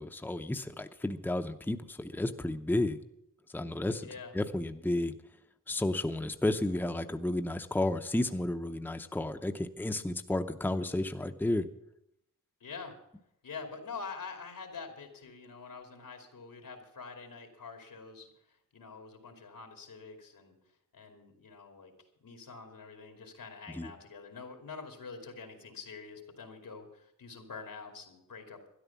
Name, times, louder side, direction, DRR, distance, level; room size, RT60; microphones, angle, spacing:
voice 1, 0.0-3.0 3.5-4.1 4.3-5.2 5.7-11.7 23.7-23.9, left 1 dB, 5° left, 7 dB, 0.7 m, -32 dB
voice 2, 4.0-4.3 12.6-13.0 13.4-20.5 20.9-21.9 22.2-28.6, left 5 dB, 90° left, 4 dB, 2.7 m, -46 dB
13.0 x 11.0 x 7.1 m, 0.80 s
wide cardioid pair, 95°, 33 cm